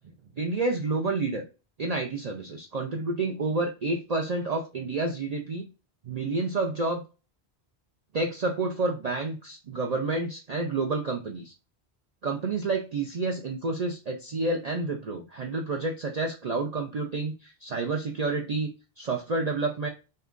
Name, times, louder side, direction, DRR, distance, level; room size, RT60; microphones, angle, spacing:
voice 1, 0.4-1.4 1.8-5.7 6.1-7.0 8.1-11.5 12.2-18.7 19.0-19.9, right 3 dB, 45° right, 1 dB, 0.6 m, -29 dB
6.5 x 2.3 x 2.5 m, 0.31 s
omnidirectional pair, 1.1 m